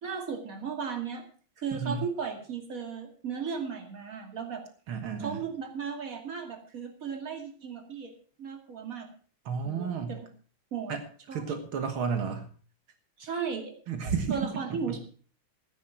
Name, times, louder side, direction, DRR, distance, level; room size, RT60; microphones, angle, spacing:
voice 1, 0.0-1.2 1.6-4.6 5.2-8.1 8.4-9.1 9.6-10.2 10.7-10.9 11.3-11.4 13.2-13.7 14.3-15.0, right 6 dB, 40° right, 3 dB, 2.8 m, -35 dB
voice 2, 1.7-2.0 4.9-5.4 9.5-10.2 10.9-11.0 11.3-12.5 13.9-14.5 14.9-15.0, right 6 dB, 85° right, 7 dB, 2.4 m, -32 dB
14.0 x 10.0 x 5.8 m, 0.42 s
omnidirectional pair, 2.2 m